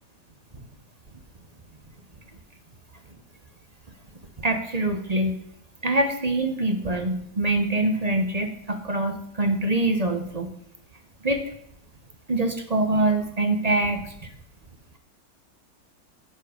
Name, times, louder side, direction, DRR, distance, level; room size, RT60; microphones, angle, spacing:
voice 1, 4.4-5.3 5.8-10.5 11.2-11.5 12.3-14.3, right 2 dB, 30° right, 6 dB, 0.7 m, -24 dB
12.0 x 6.9 x 5.0 m, 0.71 s
omnidirectional pair, 1.9 m